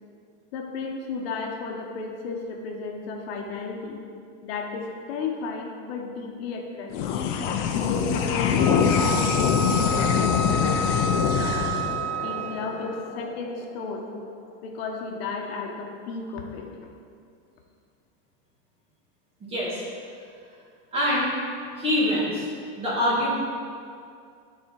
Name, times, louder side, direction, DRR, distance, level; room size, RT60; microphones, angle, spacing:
voice 1, 0.5-4.1 4.4-7.2 7.7-11.7 12.2-14.1 14.6-16.9, left 4 dB, 65° left, 1 dB, 1.1 m, -34 dB
sound 1, 6.9-13.6, left 7 dB, 45° left, 0.6 m, -24 dB
Wind instrument woodwind instrument, 8.6-12.8, right 1 dB, 55° right, 1.8 m, -30 dB
voice 2, 19.4-19.8 20.9-21.3 21.8-22.5 22.8-23.3, left 1 dB, 15° right, -6 dB, 1.7 m, -24 dB
9.8 x 4.3 x 5.4 m, 2.3 s
supercardioid pair, 180°, 33 cm